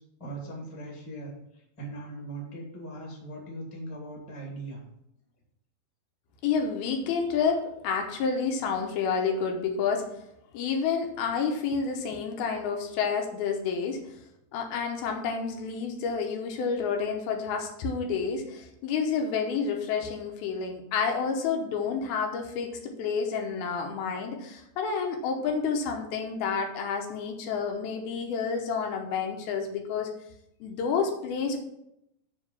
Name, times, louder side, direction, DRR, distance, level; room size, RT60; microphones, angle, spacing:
voice 1, 0.2-1.3 1.8-4.8, right 2 dB, 15° left, -3 dB, 1.0 m, -39 dB
voice 2, 6.4-10.0 10.5-14.0 14.5-30.1 30.6-31.6, left 5 dB, 75° left, 3 dB, 2.4 m, -29 dB
9.5 x 3.8 x 7.1 m, 0.81 s
omnidirectional pair, 5.4 m